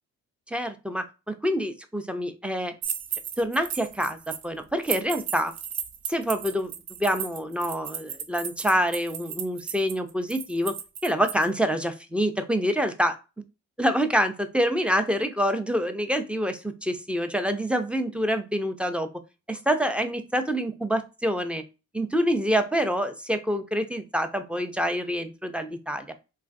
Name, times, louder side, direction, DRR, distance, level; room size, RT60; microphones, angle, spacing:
voice 1, 0.5-2.7 3.4-5.5 6.1-6.7 7.0-10.7 11.0-13.2 13.8-19.1 19.5-21.6 21.9-26.1, equal, 5° right, 8 dB, 0.3 m, -26 dB
sound 1, 2.8-4.5 4.8-11.4, right 8 dB, 65° right, 0.5 m, -35 dB
3.1 x 2.4 x 2.5 m, 0.29 s
cardioid pair, 90°, 30 cm